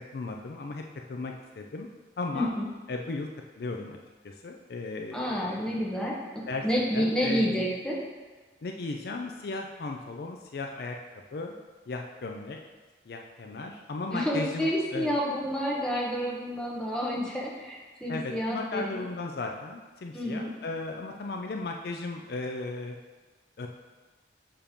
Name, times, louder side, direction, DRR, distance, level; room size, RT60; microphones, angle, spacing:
voice 1, 0.1-0.8 1.1-1.9 2.2-2.5 2.9-3.3 3.6-4.0 4.2-5.8 6.5-6.6 6.9-7.7 8.6-11.0 11.3-11.6 11.9-12.6 13.1-15.1 18.1-23.0 23.6-23.7, left 3 dB, 55° left, 2 dB, 0.4 m, -36 dB
voice 2, 2.3-2.7 5.1-8.0 14.1-19.0 20.1-20.5, equal, 5° left, -5 dB, 1.0 m, -29 dB
6.9 x 2.9 x 5.1 m, 1.3 s
head